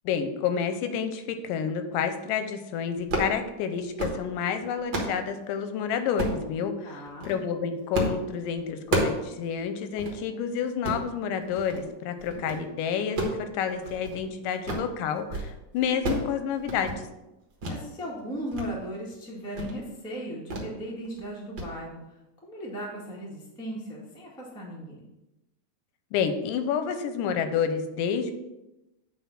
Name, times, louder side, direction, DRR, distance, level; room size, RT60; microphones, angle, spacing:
voice 1, 0.1-16.9 26.1-28.3, left 7 dB, 90° left, 8 dB, 2.3 m, -29 dB
sound 1, 3.0-3.4 3.8-4.2 4.6-5.2 6.2-6.4 7.1-7.4 7.9-8.2 8.5-9.2 9.6-9.7 10.0-10.2 10.7-11.0 11.5-11.8 12.2-12.6 13.0-14.2 14.5-14.9 15.2-15.5 15.8-16.3 16.6-17.0 17.6-17.8 18.2-18.7 19.0-19.1 19.5-19.8 20.5-20.7 21.0-21.2 21.6-21.7, right 1 dB, 50° right, 1.5 m, -31 dB
voice 2, 6.8-7.3 17.7-22.0 22.4-25.1, equal, 5° left, -4 dB, 0.6 m, -37 dB
8.6 x 3.8 x 5.8 m, 0.96 s
omnidirectional pair, 3.8 m